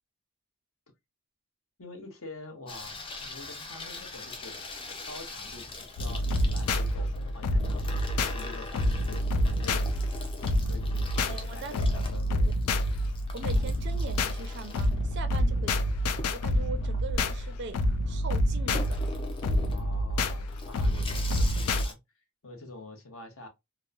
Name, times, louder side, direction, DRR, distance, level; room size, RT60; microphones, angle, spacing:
voice 1, 1.8-4.6 5.0-10.1 10.6-12.5 15.4-15.9 19.7-22.0 22.4-23.5, left 2 dB, 70° left, 0.9 m, -46 dB
Water tap faucet / Sink (filling or washing), 2.7-21.9, left 2 dB, 25° left, 0.4 m, -43 dB
sound 1, 6.0-21.9, left 1 dB, 90° left, 0.4 m, -28 dB
voice 2, 11.3-11.8 13.3-15.7 16.3-19.0, right 4 dB, 50° right, 0.4 m, -40 dB
2.9 x 2.0 x 2.4 m
head